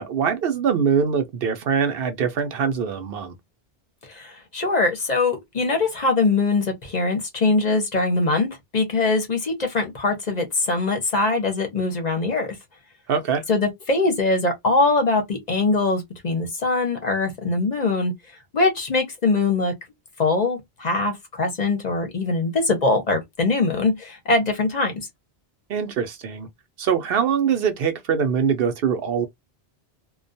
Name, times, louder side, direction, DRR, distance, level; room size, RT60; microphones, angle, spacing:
voice 1, 0.0-3.3 13.1-13.4 25.7-26.5 26.8-29.3, right 7 dB, 65° right, 0.7 m, -23 dB
voice 2, 4.0-12.5 13.5-18.1 18.5-19.7 20.2-25.1, left 3 dB, 45° left, 0.8 m, -22 dB
2.3 x 2.2 x 2.5 m
omnidirectional pair, 1.1 m